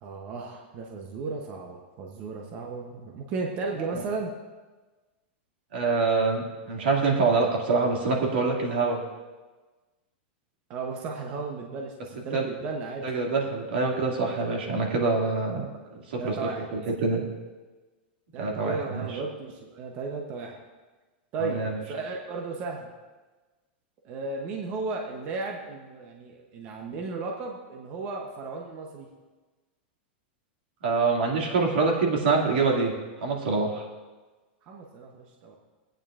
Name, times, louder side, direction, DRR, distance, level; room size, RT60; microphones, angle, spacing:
voice 1, 0.0-4.3 10.7-13.1 16.2-16.6 18.3-20.6 21.3-22.9 24.0-29.1 34.6-35.6, right 4 dB, 30° right, 1 dB, 0.8 m, -35 dB
voice 2, 5.7-9.0 12.3-12.5 13.0-15.7 15.9-16.3 16.7-17.2 18.4-19.1 21.4-21.8 30.8-32.9 33.2-33.9, right 4 dB, 80° right, -1 dB, 2.2 m, -25 dB
18.0 x 8.9 x 2.5 m, 1.3 s
supercardioid pair, 175°, 6 cm